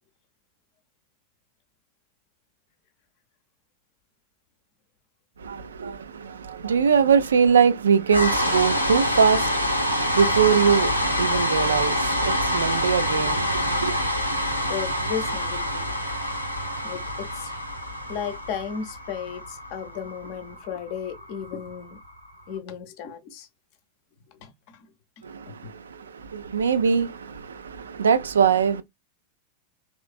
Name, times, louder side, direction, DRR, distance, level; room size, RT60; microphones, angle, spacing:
voice 1, 5.4-14.0 25.2-28.8, right 6 dB, 70° right, 0.4 m, -22 dB
sound 1, 8.1-22.2, equal, 90° left, 0.6 m, -26 dB
voice 2, 14.7-15.9 16.8-17.5 18.1-22.0 22.5-23.5 24.3-24.9 25.2-25.7, left 8 dB, 45° left, 0.7 m, -35 dB
3.2 x 3.0 x 2.3 m
figure-of-eight pair, 90°, 0 cm